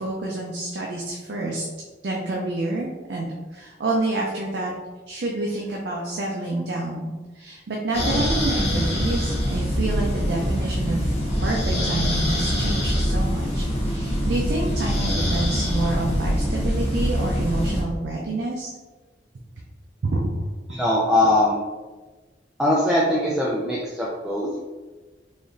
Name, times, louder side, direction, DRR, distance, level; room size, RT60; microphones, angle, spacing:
voice 1, 0.0-1.6 2.0-4.7 5.1-18.7 20.0-20.3, right 2 dB, 65° right, -2 dB, 0.5 m, -28 dB
sound 1, 7.9-17.8, equal, 35° left, 1.0 m, -24 dB
voice 2, 20.7-21.6 22.6-24.6, left 1 dB, 5° right, -6 dB, 0.4 m, -21 dB
4.0 x 3.0 x 2.6 m, 1.3 s
head